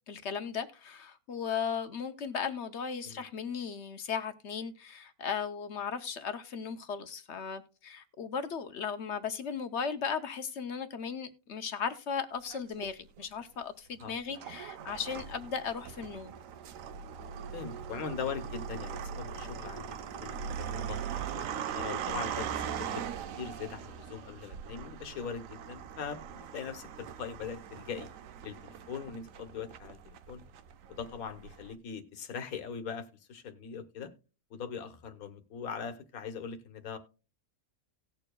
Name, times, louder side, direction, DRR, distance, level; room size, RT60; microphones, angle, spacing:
voice 1, 0.1-16.3, left 6 dB, 60° left, 0.9 m, -36 dB
sound 1, 12.5-13.2 14.0-31.7, right 8 dB, 70° right, 1.0 m, -40 dB
voice 2, 14.0-14.4 17.5-21.0 21.3-23.1 23.4-28.1 28.4-30.4 30.9-34.1 34.5-37.0, left 6 dB, 75° left, 1.5 m, -41 dB
18.0 x 6.8 x 2.3 m
omnidirectional pair, 1.5 m